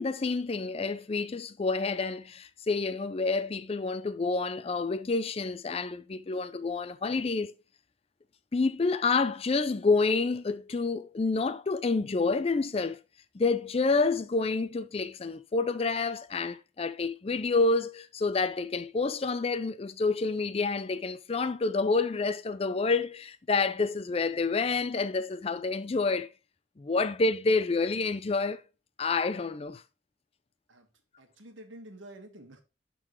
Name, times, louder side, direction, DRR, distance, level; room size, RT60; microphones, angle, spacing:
voice 1, 0.0-7.5 8.5-13.0 13.3-26.3 26.8-28.6 29.0-29.8, left 3 dB, 30° left, 0.4 m, -28 dB
voice 2, 31.2-32.6, right 1 dB, 90° right, 1.5 m, -48 dB
11.0 x 3.9 x 3.0 m
head